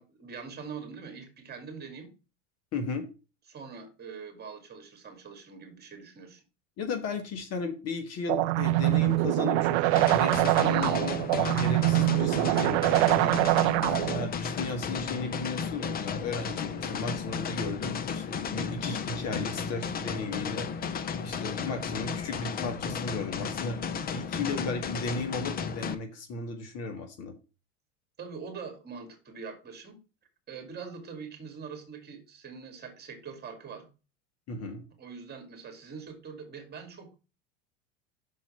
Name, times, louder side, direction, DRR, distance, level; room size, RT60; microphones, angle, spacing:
voice 1, 0.0-2.1 3.5-6.4 10.6-11.4 13.5-14.0 28.2-30.0 30.5-33.9 35.0-37.2, right 5 dB, 25° right, 5 dB, 2.4 m, -43 dB
voice 2, 2.7-3.1 6.8-11.1 11.4-13.4 13.9-20.7 21.2-23.8 24.1-27.3 34.5-34.8, left 3 dB, 40° left, 6 dB, 1.6 m, -35 dB
sound 1, 8.3-14.3, right 20 dB, 60° right, 0.5 m, -24 dB
sound 2, 10.0-26.0, left 6 dB, 25° left, 0.7 m, -34 dB
6.3 x 4.3 x 5.6 m, 0.31 s
hypercardioid pair, 95°, 37 cm